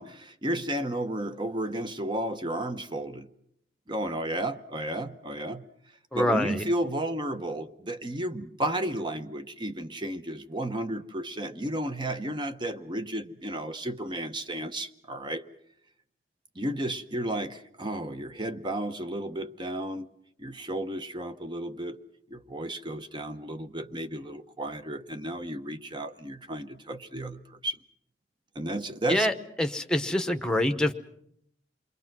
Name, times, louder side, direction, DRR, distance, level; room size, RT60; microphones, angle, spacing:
voice 1, 0.0-3.3 3.9-5.6 6.1-15.5 16.6-20.1 20.4-22.0 22.3-27.8 28.5-29.3, right 1 dB, 25° right, 0.9 m, -33 dB
voice 2, 6.1-6.6 29.1-29.3 29.6-30.9, left 1 dB, 5° left, 0.9 m, -25 dB
28.5 x 22.5 x 6.0 m
head